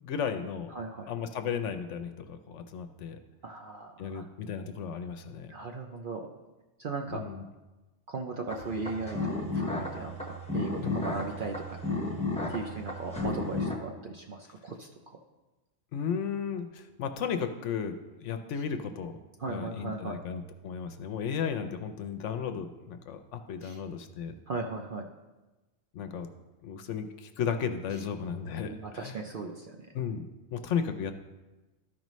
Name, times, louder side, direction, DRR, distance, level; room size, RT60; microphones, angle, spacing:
voice 1, 0.0-0.7 1.1-3.2 4.0-5.5 7.1-7.4 10.8-11.0 15.9-19.1 19.5-24.3 25.9-26.3 26.6-29.1 29.9-30.3 30.5-31.1, left 7 dB, 70° left, 8 dB, 0.9 m, -34 dB
voice 2, 0.7-1.1 3.4-4.3 5.5-6.3 6.8-7.3 8.1-11.8 12.5-14.9 19.4-20.2 23.6-23.8 24.5-25.1 27.9-28.0 28.7-29.9, right 3 dB, 55° right, 3 dB, 0.6 m, -37 dB
sound 1, 8.5-13.7, left 2 dB, 5° left, 0.9 m, -33 dB
13.0 x 5.3 x 3.1 m, 1.1 s
omnidirectional pair, 1.4 m